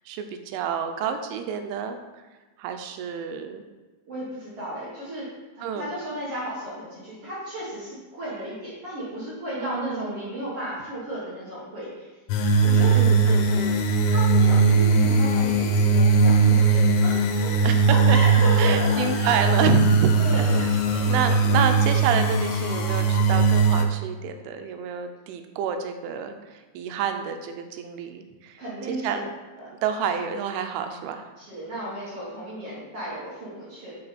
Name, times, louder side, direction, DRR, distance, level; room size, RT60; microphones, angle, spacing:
voice 1, 0.1-2.0 2.6-3.6 5.6-5.9 9.6-10.3 12.9-13.9 17.6-18.2 18.6-20.7 21.1-28.6 28.9-29.3 29.8-31.3, right 7 dB, 90° right, 7 dB, 3.1 m, -29 dB
voice 2, 4.1-5.3 5.5-12.1 12.6-13.0 14.0-17.5 17.8-19.4 20.2-21.1 28.6-29.2 29.6-29.7 31.4-33.9, right 1 dB, 60° right, -8 dB, 1.6 m, -34 dB
sound 1, 12.3-23.8, right 3 dB, 85° left, 3.1 m, -19 dB
6.6 x 5.4 x 4.2 m, 1.3 s
omnidirectional pair, 5.4 m